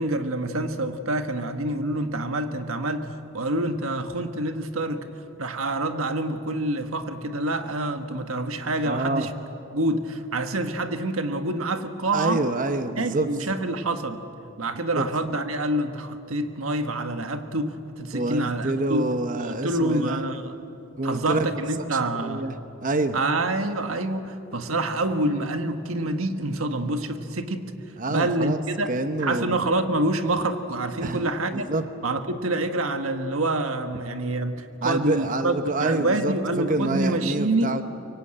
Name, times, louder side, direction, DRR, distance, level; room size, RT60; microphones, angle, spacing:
voice 1, 0.0-5.0 5.4-9.3 9.7-12.4 13.0-14.2 14.6-20.6 21.0-22.4 23.1-27.6 28.1-28.9 29.2-31.7 32.0-37.7, right 2 dB, 90° right, 7 dB, 1.5 m, -27 dB
voice 2, 8.8-9.3 12.1-13.3 15.0-15.1 18.1-20.2 21.0-21.6 22.2-22.5 22.8-23.2 28.0-28.6 28.9-29.6 31.0-31.3 31.5-31.8 34.8-37.8, right 2 dB, 40° right, 8 dB, 0.9 m, -27 dB
24.5 x 23.5 x 8.8 m, 2.9 s
head